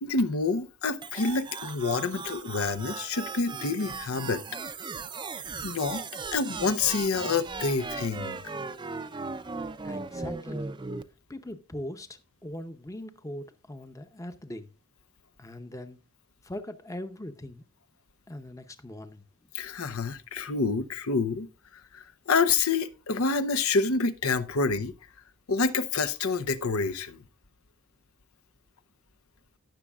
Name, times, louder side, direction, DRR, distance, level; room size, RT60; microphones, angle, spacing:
voice 1, 0.0-4.4 5.6-6.0 6.3-8.4 19.5-21.5 21.9-24.9 25.5-27.2, left 4 dB, 90° left, 0.8 m, -27 dB
sound 1, 1.0-11.0, right 4 dB, 20° right, 0.5 m, -37 dB
voice 2, 9.8-10.6 11.3-14.7 15.4-16.0 16.4-17.6 18.3-19.2, left 1 dB, 15° left, 0.7 m, -40 dB
17.0 x 6.3 x 2.4 m
head